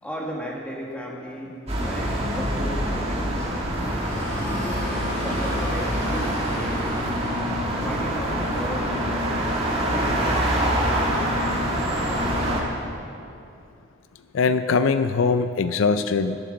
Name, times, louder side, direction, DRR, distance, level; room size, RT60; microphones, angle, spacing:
voice 1, 0.0-3.5 4.4-6.8 7.8-9.0 9.9-12.5, equal, 5° left, -2 dB, 1.5 m, -36 dB
sound 1, 1.7-12.6, equal, 30° right, 1.7 m, -25 dB
sound 2, 3.6-8.8, left 1 dB, 50° left, 3.1 m, -35 dB
voice 2, 14.3-16.4, left 4 dB, 85° left, 11 dB, 0.4 m, -21 dB
11.5 x 7.8 x 6.5 m, 2.6 s
head